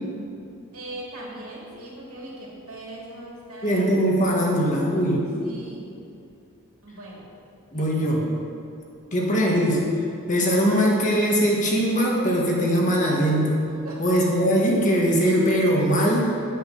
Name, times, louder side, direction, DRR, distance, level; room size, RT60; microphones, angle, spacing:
voice 1, 0.7-3.8 4.6-6.0 6.8-7.3 7.7-7.9 13.8-14.0, right 1 dB, 80° right, -4 dB, 2.6 m, -39 dB
voice 2, 3.6-5.3 7.7-8.4 9.1-9.9 10.3-13.6 14.0-16.3, equal, 35° left, -2 dB, 1.6 m, -21 dB
9.0 x 8.0 x 5.5 m, 2.5 s
head